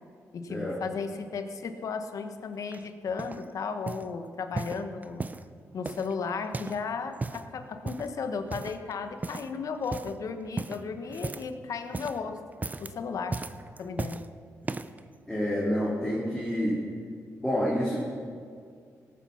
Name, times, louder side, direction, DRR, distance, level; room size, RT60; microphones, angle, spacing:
voice 1, 0.3-5.3 5.7-12.4 12.8-13.5 13.8-14.2, left 5 dB, 70° left, 8 dB, 1.1 m, -35 dB
sound 1, 2.7-3.5 3.9-4.1 4.5-5.5 5.9-6.8 7.1-7.5 7.9-8.2 8.5-8.9 9.2-9.6 9.8-10.2 10.6-11.6 11.8-12.2 12.5-13.0 13.3-14.3 14.6-15.0 15.7-15.8, right 3 dB, 25° right, 0.6 m, -36 dB
voice 2, 15.3-16.8 17.4-18.0, equal, 10° left, -5 dB, 2.8 m, -28 dB
18.5 x 8.6 x 5.8 m, 2.2 s
cardioid pair, 75°, 6 cm